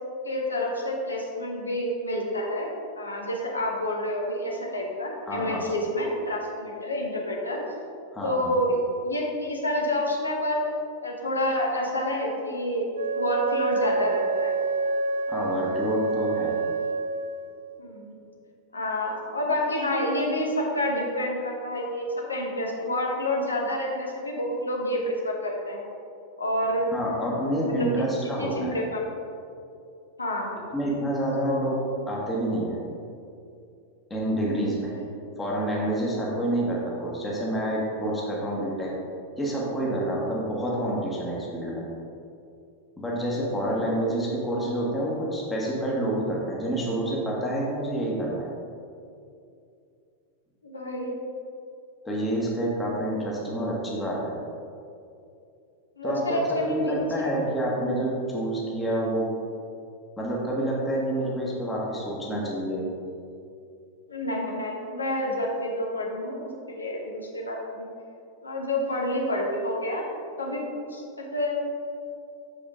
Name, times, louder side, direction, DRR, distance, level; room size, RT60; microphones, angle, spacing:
voice 1, 0.2-2.7 3.0-7.6 8.2-8.8 9.0-10.7 11.0-12.9 13.1-14.5 17.8-18.1 18.7-25.8 26.4-26.9 27.6-29.0 30.2-30.6 31.4-31.7 34.4-34.7 50.6-51.2 56.0-57.4 64.1-67.9 68.4-70.1 70.4-70.6 70.9-71.6, left 1 dB, 75° left, -1 dB, 1.1 m, -28 dB
voice 2, 5.3-5.7 8.1-8.6 15.3-16.6 26.9-28.8 30.7-31.8 32.1-32.8 34.1-34.9 35.4-38.9 39.4-41.9 43.0-48.5 52.0-54.4 56.0-56.4 56.7-59.3 60.2-62.9, right 1 dB, 10° left, -4 dB, 1.2 m, -28 dB
Wind instrument woodwind instrument, 12.9-17.6, right 3 dB, 70° right, 0.4 m, -27 dB
6.9 x 5.0 x 3.6 m, 2.5 s
figure-of-eight pair, 90°, 0 cm